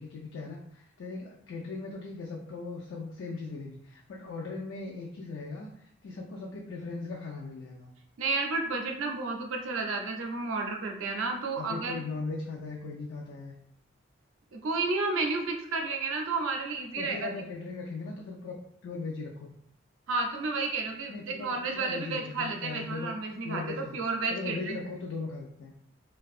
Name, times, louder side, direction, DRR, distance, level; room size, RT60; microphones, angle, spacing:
voice 1, 0.0-7.9 11.6-13.5 16.9-18.6 18.8-19.5 21.1-23.1 23.4-24.0 24.3-25.7, left 3 dB, 75° left, -2 dB, 0.3 m, -39 dB
voice 2, 8.2-12.0 14.5-17.3 20.1-24.8, right 3 dB, 80° right, 2 dB, 0.4 m, -31 dB
2.6 x 2.2 x 2.4 m, 0.70 s
head